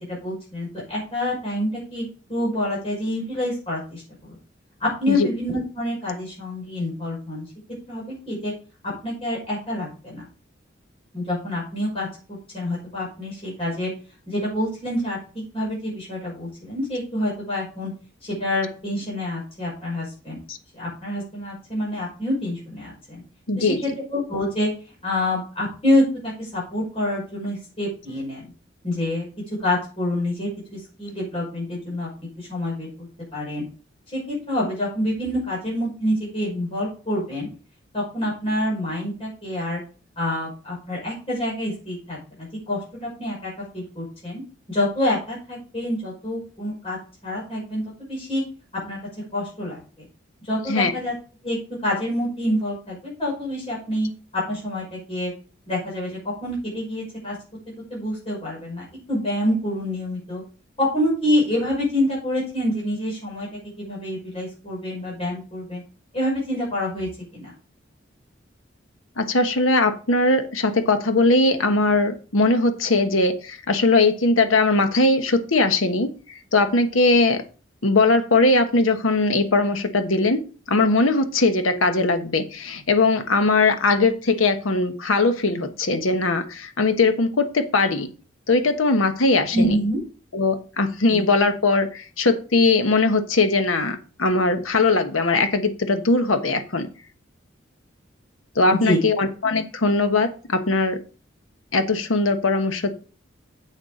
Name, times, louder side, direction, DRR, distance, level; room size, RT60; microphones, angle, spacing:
voice 1, 0.1-4.3 4.8-7.4 7.9-8.5 9.0-10.2 11.1-12.1 12.5-13.9 14.3-17.9 18.2-20.4 20.7-23.2 23.6-24.7 25.0-26.0 26.4-28.5 28.8-29.3 29.6-32.1 32.4-33.1 33.3-33.6 34.1-37.5 37.9-39.8 40.2-44.4 44.7-47.0 47.2-47.8 48.1-48.4 48.8-49.0 49.3-50.1 50.4-51.1 51.4-51.6 51.8-54.1 54.5-55.3 55.7-57.3 57.9-60.4 60.8-63.5 63.8-65.8 66.1-67.5 89.5-90.0 91.1-91.2 98.7-99.0, left 1 dB, 30° left, -5 dB, 5.7 m, -27 dB
voice 2, 23.5-23.8 50.7-50.9 69.2-76.1 76.5-77.4 77.8-88.1 88.5-89.7 90.3-96.9 98.5-101.0 101.7-102.9, left 3 dB, 90° left, 8 dB, 1.1 m, -20 dB
8.1 x 6.7 x 5.0 m, 0.37 s
head